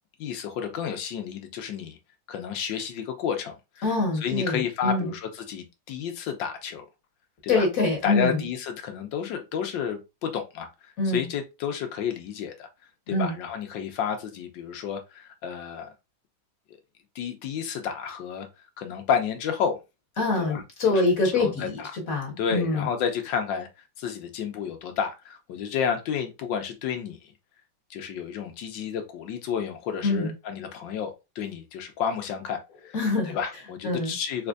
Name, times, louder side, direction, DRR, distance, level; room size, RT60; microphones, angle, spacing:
voice 1, 0.2-2.0 2.3-3.8 4.2-6.9 7.4-7.6 8.0-10.7 11.0-12.7 13.1-15.9 17.1-18.5 18.8-19.8 20.4-20.6 20.9-27.3 27.9-32.6 32.8-32.9 33.3-34.5, left 7 dB, 70° left, 1.3 m, -31 dB
voice 2, 3.8-5.1 7.5-8.4 11.0-11.3 13.1-13.3 20.2-22.9 30.0-30.3 32.9-33.4 33.8-34.1, left 2 dB, 45° left, 1.6 m, -25 dB
4.3 x 2.6 x 2.5 m
omnidirectional pair, 2.3 m